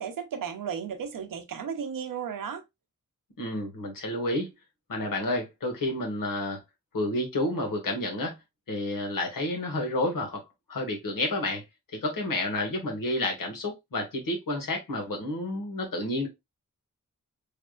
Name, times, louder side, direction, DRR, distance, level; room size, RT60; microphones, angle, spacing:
voice 1, 0.0-2.6, right 7 dB, 90° right, 0.7 m, -34 dB
voice 2, 3.4-4.5 4.9-6.6 6.9-8.3 8.7-10.4 10.7-11.6 11.9-16.3, left 1 dB, 85° left, 1.5 m, -30 dB
3.5 x 3.3 x 2.4 m
wide cardioid pair, 100°, 32 cm